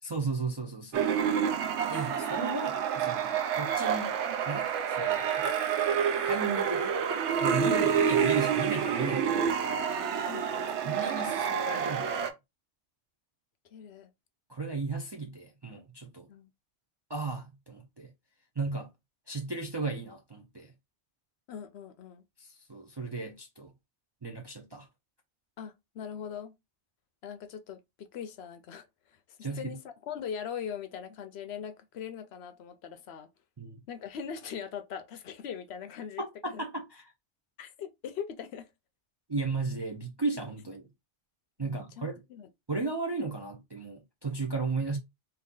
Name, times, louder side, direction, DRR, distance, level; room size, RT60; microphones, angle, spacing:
voice 1, 0.0-1.1 1.9-4.2 4.5-5.5 6.2-7.0 7.4-9.4 10.8-12.3 14.5-16.3 17.1-18.1 18.6-18.9 19.3-20.7 22.4-23.7 24.2-24.9 29.4-29.8 33.6-33.8 36.2-37.1 39.3-40.9 41.6-42.1 42.7-45.0, right 3 dB, 35° right, 0.4 m, -35 dB
sound 1, 0.9-12.3, right 7 dB, 80° right, 0.9 m, -28 dB
voice 2, 10.3-10.7 13.7-14.1 16.3-16.5 21.5-22.2 25.6-26.5 27.2-33.3 33.9-36.6 37.6-38.7 41.6-42.5, left 7 dB, 70° left, 0.8 m, -41 dB
2.8 x 2.7 x 3.6 m
omnidirectional pair, 1.2 m